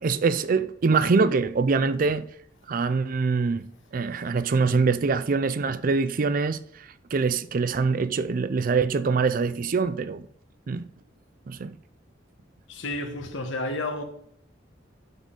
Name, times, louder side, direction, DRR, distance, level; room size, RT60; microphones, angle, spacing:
voice 1, 0.0-2.2 2.7-10.3 10.7-10.9 11.5-11.8, right 4 dB, 45° right, 0.4 m, -24 dB
voice 2, 12.7-14.0, left 2 dB, 85° left, 1.2 m, -31 dB
12.0 x 4.1 x 3.8 m
head